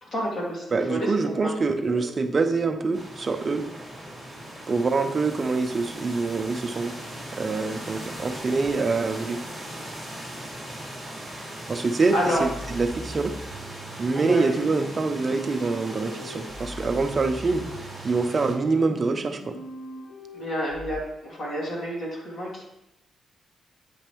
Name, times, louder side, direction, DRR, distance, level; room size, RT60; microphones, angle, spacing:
voice 1, 0.0-1.5 1.9-2.0 12.1-12.4 14.1-14.5 20.3-22.6, equal, 45° left, -4 dB, 2.1 m, -29 dB
voice 2, 0.7-3.7 4.7-6.9 7.3-9.4 11.4-13.3 14.0-19.6, right 3 dB, 30° right, 7 dB, 0.6 m, -25 dB
sound 1, 2.9-18.5, right 1 dB, 5° left, 1.8 m, -39 dB
sound 2, 12.4-20.9, equal, 75° left, 2.4 m, -42 dB
8.5 x 5.1 x 3.0 m, 0.83 s
wide cardioid pair, 155°, 0 cm